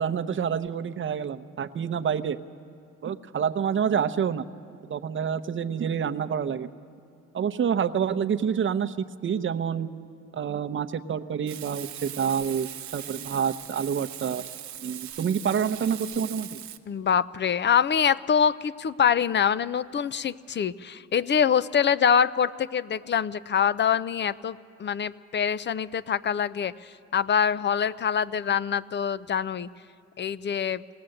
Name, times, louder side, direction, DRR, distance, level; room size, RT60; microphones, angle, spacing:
voice 1, 0.0-2.4 3.0-4.5 4.9-6.7 7.3-9.9 10.3-14.4 14.8-16.6, right 7 dB, 40° right, 9 dB, 0.8 m, -28 dB
Frying (food), 11.5-16.8, right 11 dB, 70° right, 0.9 m, -40 dB
voice 2, 16.9-29.7 30.2-30.8, left 7 dB, 35° left, 16 dB, 0.5 m, -25 dB
20.0 x 17.5 x 7.8 m, 2.4 s
cardioid pair, 90°, 30 cm